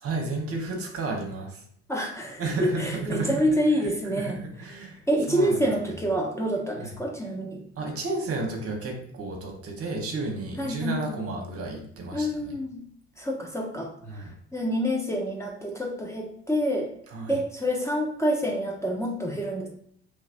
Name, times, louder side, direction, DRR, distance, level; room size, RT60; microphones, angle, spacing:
voice 1, 0.0-1.6 2.4-3.5 3.8-5.0 5.3-5.6 6.8-6.9 7.8-12.5 14.0-14.3 17.1-17.4, right 3 dB, 45° right, 1 dB, 1.0 m, -32 dB
voice 2, 1.9-4.4 5.1-7.6 10.6-11.2 12.1-12.8 13.2-13.9 14.5-16.9 17.3-19.7, equal, 10° left, -1 dB, 0.9 m, -27 dB
3.2 x 3.0 x 2.5 m, 0.66 s
hypercardioid pair, 60°, 33 cm